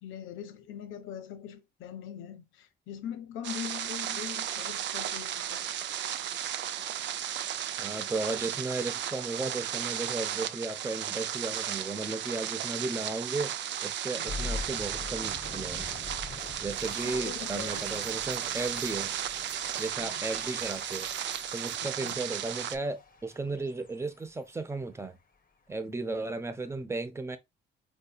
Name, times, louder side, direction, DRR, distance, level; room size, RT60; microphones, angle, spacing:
voice 1, 0.0-5.6 14.2-14.4 17.0-18.0 20.0-20.2 21.8-22.2, left 9 dB, 85° left, 0.5 m, -42 dB
sound 1, 3.4-22.8, right 10 dB, 65° right, 0.4 m, -35 dB
voice 2, 7.8-13.5 13.8-15.9 16.6-19.1 19.8-21.1 21.5-25.2 25.7-27.4, right 3 dB, 15° right, 0.6 m, -35 dB
sound 2, 14.3-25.3, left 4 dB, 45° left, 0.8 m, -44 dB
4.6 x 2.7 x 2.2 m
cardioid pair, 90°, 20 cm